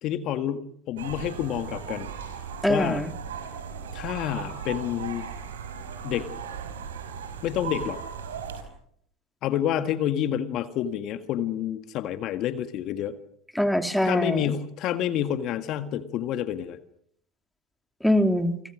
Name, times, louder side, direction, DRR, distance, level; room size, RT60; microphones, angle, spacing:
voice 1, 0.0-2.1 2.7-3.0 3.9-5.3 6.0-6.3 7.4-8.0 9.4-13.1 14.0-16.8, left 10 dB, 50° left, 10 dB, 1.7 m, -28 dB
sound 1, 1.0-8.6, right 6 dB, 80° right, 5.0 m, -37 dB
voice 2, 2.6-3.1 13.5-14.6 18.0-18.5, equal, ahead, 7 dB, 2.7 m, -23 dB
29.0 x 24.5 x 6.3 m, 0.67 s
hypercardioid pair, 80°, 0 cm